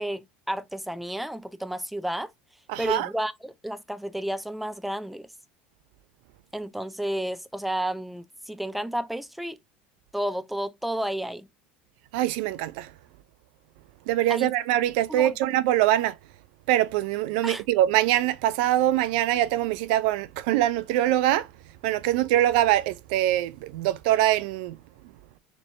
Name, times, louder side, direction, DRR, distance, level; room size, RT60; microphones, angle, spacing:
voice 1, 0.0-2.3 2.8-5.3 6.5-9.6 10.1-11.5 14.3-14.5 15.1-15.4 17.4-17.6, right 1 dB, ahead, 0.6 m, -31 dB
voice 2, 2.7-3.1 12.1-12.9 14.1-16.2 16.7-21.5 21.8-24.8, right 13 dB, 70° right, 0.4 m, -23 dB
4.0 x 3.1 x 3.1 m
hypercardioid pair, 85°, 5 cm